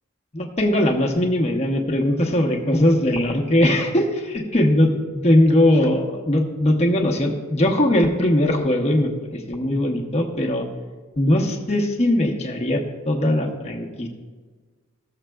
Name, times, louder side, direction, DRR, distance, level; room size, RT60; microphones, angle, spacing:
voice 1, 0.3-10.7 11.2-14.1, left 1 dB, 30° left, 1 dB, 1.0 m, -20 dB
15.5 x 7.3 x 2.3 m, 1.4 s
head